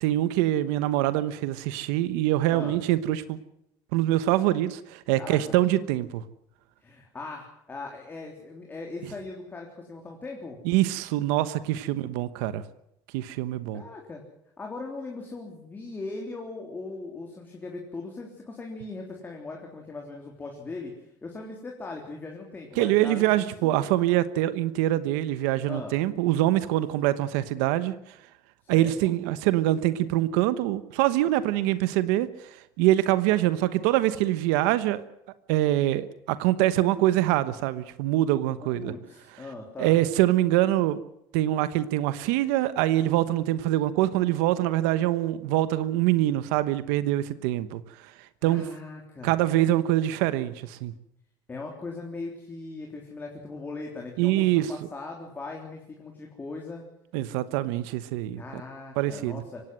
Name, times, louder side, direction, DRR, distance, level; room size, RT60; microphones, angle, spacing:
voice 1, 0.0-3.4 3.9-6.2 10.6-12.6 13.1-13.8 22.8-27.9 28.7-32.3 32.8-35.0 35.5-38.9 39.8-41.0 41.3-47.8 48.4-48.6 49.2-50.9 54.2-54.7 57.1-58.4 59.0-59.4, right 14 dB, 90° right, 13 dB, 1.1 m, -24 dB
voice 2, 5.2-5.5 6.8-10.6 13.7-14.2 14.6-23.8 25.7-26.0 28.6-29.1 38.6-40.0 48.4-49.4 51.5-56.8 58.4-59.6, left 3 dB, 20° left, 1 dB, 3.6 m, -39 dB
24.0 x 17.5 x 7.7 m, 0.80 s
cardioid pair, 135°, 10 cm